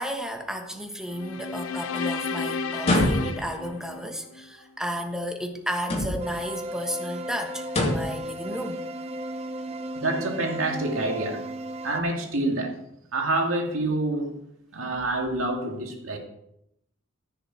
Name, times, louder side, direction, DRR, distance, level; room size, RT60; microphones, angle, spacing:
voice 1, 0.0-8.8, equal, 5° right, 4 dB, 1.2 m, -33 dB
sound 1, 1.1-4.5, left 4 dB, 90° left, 0.6 m, -32 dB
sound 2, 2.8-3.6 5.8-6.4 7.7-8.2, left 1 dB, 30° left, 2.8 m, -25 dB
sound 3, 6.2-12.0, right 1 dB, 30° right, 0.8 m, -35 dB
voice 2, 10.0-11.5 11.8-12.8 13.1-14.4 14.7-16.2, right 2 dB, 80° right, 2 dB, 2.2 m, -27 dB
15.0 x 7.0 x 4.8 m, 0.78 s
head